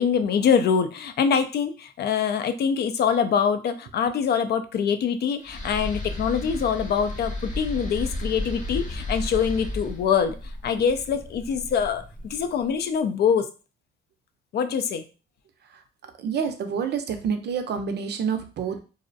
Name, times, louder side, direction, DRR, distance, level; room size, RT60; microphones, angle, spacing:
voice 1, 0.0-10.4 10.6-13.5 14.5-15.0, left 7 dB, 55° left, 9 dB, 0.4 m, -24 dB
sound 1, 5.4-12.6, left 1 dB, 40° left, 0.8 m, -34 dB
voice 2, 16.2-18.8, right 6 dB, 60° right, 7 dB, 0.5 m, -28 dB
2.5 x 2.0 x 2.5 m, 0.33 s
cardioid pair, 90°, 20 cm